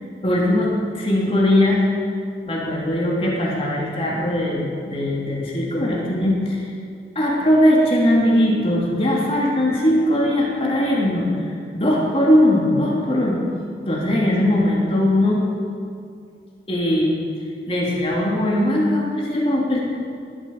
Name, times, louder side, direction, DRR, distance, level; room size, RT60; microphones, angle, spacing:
voice 1, 0.2-1.9 2.5-6.7 7.1-13.4 13.9-15.4 16.7-17.1 17.7-19.8, left 1 dB, 35° left, -3 dB, 2.9 m, -20 dB
19.5 x 12.5 x 5.4 m, 2.3 s
head